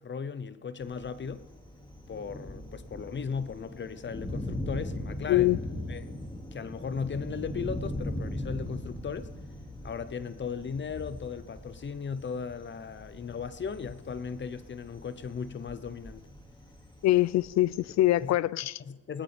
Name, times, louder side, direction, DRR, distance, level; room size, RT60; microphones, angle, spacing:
voice 1, 0.0-1.4 2.1-5.6 5.9-6.2 6.5-9.3 9.8-16.3 18.2-18.4 18.8-19.2, left 6 dB, 40° left, 0.8 m, -37 dB
Thunder, 0.8-18.3, left 1 dB, 15° left, 2.3 m, -40 dB
voice 2, 17.0-18.8, left 16 dB, 65° left, 0.5 m, -24 dB
20.0 x 19.0 x 3.5 m
cardioid pair, 90°, 30 cm